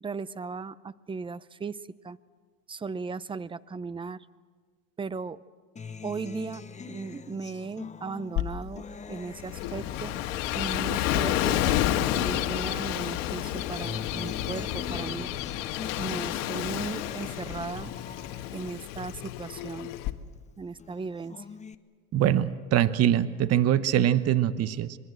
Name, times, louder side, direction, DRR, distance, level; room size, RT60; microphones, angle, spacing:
voice 1, 0.0-1.8 2.0-2.2 2.7-4.3 5.0-5.4 6.0-8.8 9.1-10.1 10.5-15.3 16.0-17.9 18.5-19.9 20.6-21.4, right 4 dB, 15° right, 18 dB, 0.6 m, -37 dB
Acoustic guitar, 5.8-12.4 12.8-20.4 20.8-21.7, left 5 dB, 20° left, 1.0 m, -44 dB
Water tap faucet / Sink (filling or washing), 8.4-20.1, left 13 dB, 60° left, 1.4 m, -40 dB
Gull seagull / Waves surf, 9.1-19.7, left 13 dB, 75° left, 1.7 m, -30 dB
voice 2, 22.1-25.0, right 11 dB, 40° right, 14 dB, 1.0 m, -23 dB
26.0 x 22.0 x 7.8 m, 1.5 s
supercardioid pair, 105°, 37 cm